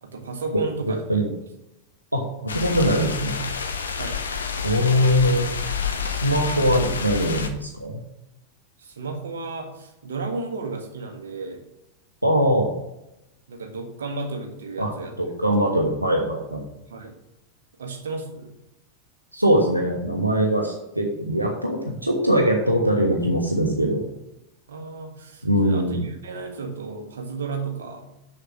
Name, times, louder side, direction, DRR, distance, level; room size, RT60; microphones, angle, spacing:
voice 1, 0.0-1.3 3.9-4.2 8.8-11.6 13.5-15.1 15.6-15.7 16.9-17.2 17.8-18.5 24.7-28.0, right 3 dB, 65° right, 5 dB, 1.4 m, -33 dB
voice 2, 2.1-3.4 4.6-5.5 6.0-8.0 12.2-12.7 14.8-14.9 15.2-16.6 19.3-24.0 25.4-26.0, equal, 85° right, 0 dB, 1.1 m, -22 dB
sound 1, 2.5-7.5, left 6 dB, 70° left, 0.9 m, -29 dB
6.7 x 6.6 x 6.3 m, 0.88 s
figure-of-eight pair, 90°, 0 cm